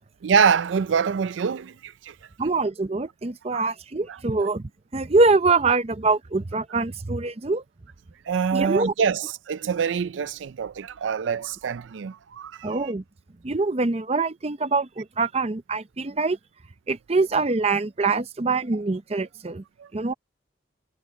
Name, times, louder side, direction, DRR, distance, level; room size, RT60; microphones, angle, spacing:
voice 1, 0.2-2.1 3.5-3.6 4.1-4.2 8.3-12.8 19.8-19.9, right 6 dB, 85° right, 0.4 m, -25 dB
voice 2, 2.4-7.6 8.5-8.9 12.6-13.0 13.4-16.4 16.9-19.6 19.9-20.1, right 3 dB, 35° right, 0.6 m, -24 dB
head